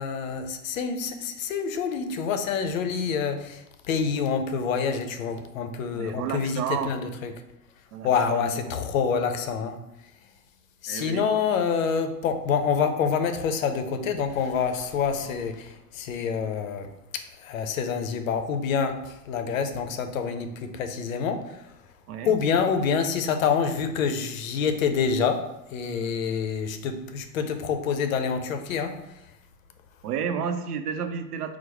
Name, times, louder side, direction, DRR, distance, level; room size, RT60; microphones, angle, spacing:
voice 1, 0.0-7.3 8.0-9.8 10.8-21.6 22.3-25.4 25.7-29.0, left 6 dB, 55° left, 7 dB, 0.6 m, -27 dB
voice 2, 5.9-6.9 7.9-8.5 10.9-11.2 22.1-22.4 30.0-31.6, right 7 dB, 65° right, 7 dB, 0.6 m, -31 dB
4.5 x 2.1 x 4.5 m, 0.87 s
figure-of-eight pair, 95°, 50 cm